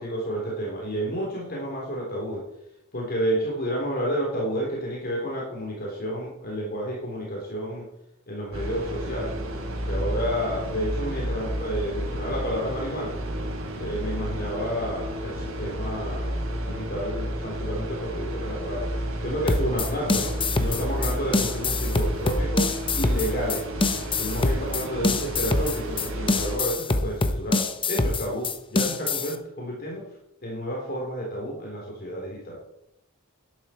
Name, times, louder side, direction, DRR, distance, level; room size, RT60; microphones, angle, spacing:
voice 1, 0.0-2.4 2.9-7.9 8.3-9.3 9.8-13.2 13.8-18.9 19.2-22.7 23.0-23.7 24.2-27.6 27.9-30.1 30.4-32.6, equal, 45° left, -2 dB, 3.7 m, -30 dB
sound 1, 8.5-26.6, right 1 dB, 85° right, 3.6 m, -31 dB
sound 2, 19.5-29.4, left 3 dB, 25° left, 0.9 m, -25 dB
12.0 x 12.0 x 4.5 m, 0.80 s
head